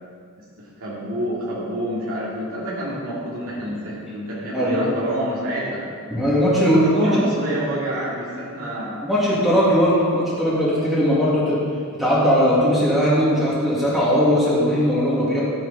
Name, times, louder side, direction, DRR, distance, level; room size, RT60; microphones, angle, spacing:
voice 1, 0.6-5.8 6.8-9.1, right 1 dB, 70° right, -7 dB, 2.3 m, -28 dB
voice 2, 4.5-4.8 6.1-7.2 9.0-11.6 12.0-15.4, equal, ahead, -8 dB, 2.3 m, -19 dB
12.5 x 8.8 x 4.1 m, 2.3 s
head